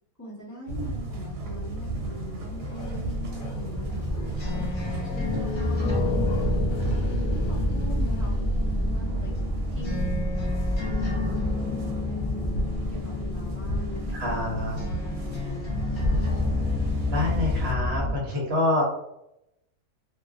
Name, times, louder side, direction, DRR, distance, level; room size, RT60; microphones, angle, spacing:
voice 1, 0.2-4.1 4.5-9.3 9.7-12.5 12.9-14.1 14.6-16.3, equal, 15° left, -8 dB, 0.8 m, -42 dB
sound 1, 0.7-17.7, right 1 dB, 75° right, 1.0 m, -35 dB
Bark, 2.0-9.6 9.9-10.0, right 1 dB, 70° left, 1.3 m, -42 dB
sound 2, 3.7-18.1, left 1 dB, 40° left, 0.4 m, -28 dB
voice 2, 14.1-14.8 17.1-18.8, left 2 dB, 55° right, -3 dB, 0.9 m, -26 dB
2.6 x 2.3 x 2.3 m, 0.81 s
omnidirectional pair, 1.6 m